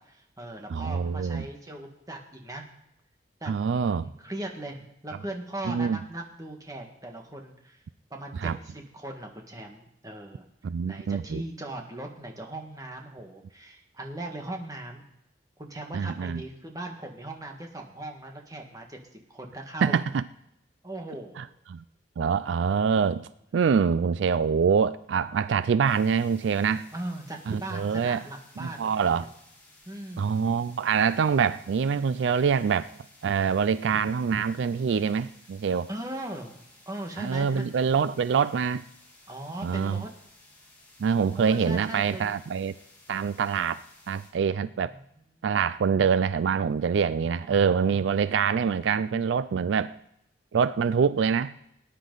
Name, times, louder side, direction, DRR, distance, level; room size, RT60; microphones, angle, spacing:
voice 1, 0.0-2.6 3.4-7.8 8.1-10.4 10.9-15.0 15.6-20.0 20.8-21.5 26.9-29.3 29.8-30.5 35.9-37.7 39.3-40.2 41.2-42.3 44.5-45.0 45.4-45.5 47.4-48.1, right 1 dB, 20° right, 2 dB, 1.6 m, -39 dB
voice 2, 0.7-1.5 3.5-4.1 5.7-6.0 8.4-8.6 10.6-11.4 15.9-16.4 19.8-20.2 21.4-21.5 21.7-21.8 22.2-26.9 27.5-28.2 28.6-29.3 30.2-32.9 33.2-35.9 37.2-38.8 39.6-40.0 41.0-42.7 43.1-43.8 44.1-44.9 45.4-50.0 50.5-51.5, right 6 dB, 80° right, 16 dB, 0.4 m, -25 dB
sound 1, 25.8-44.3, left 2 dB, 10° left, 3.3 m, -56 dB
18.5 x 10.0 x 4.0 m, 0.80 s
head